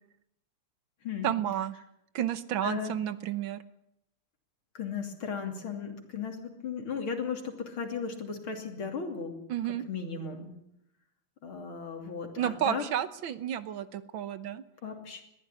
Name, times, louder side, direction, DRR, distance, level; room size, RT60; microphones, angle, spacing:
voice 1, 1.2-1.7 2.1-3.6 9.5-9.8 12.4-14.6, right 10 dB, 70° right, 14 dB, 1.7 m, -31 dB
voice 2, 2.6-2.9 4.8-9.4 9.9-10.5 11.4-12.8 14.8-15.2, left 5 dB, 70° left, 4 dB, 3.7 m, -36 dB
21.0 x 14.5 x 9.9 m, 0.79 s
omnidirectional pair, 2.4 m